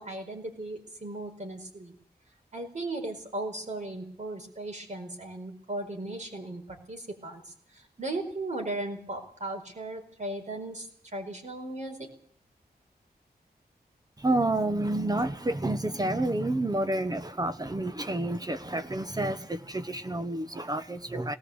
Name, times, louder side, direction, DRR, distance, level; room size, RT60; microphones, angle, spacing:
voice 1, 0.0-1.9 2.5-12.1, right 2 dB, 45° right, 4 dB, 4.8 m, -37 dB
voice 2, 14.2-21.4, right 1 dB, 20° right, 10 dB, 1.1 m, -29 dB
19.5 x 18.5 x 8.1 m, 0.62 s
wide cardioid pair, 115°, 17 cm